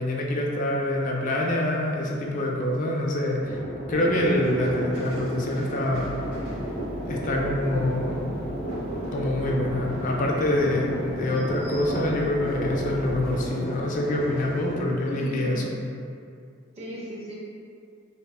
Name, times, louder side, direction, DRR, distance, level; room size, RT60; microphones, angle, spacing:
voice 1, 0.0-3.6 3.9-6.1 7.1-8.3 9.1-15.7, left 1 dB, 40° left, -2 dB, 0.3 m, -26 dB
sound 1, 3.4-14.8, right 1 dB, 5° right, 1.0 m, -33 dB
sound 2, 5.9-13.5, equal, 50° right, 1.1 m, -41 dB
voice 2, 15.0-15.7 16.8-17.3, equal, 35° right, -6 dB, 0.5 m, -35 dB
2.7 x 2.2 x 2.2 m, 2.4 s
head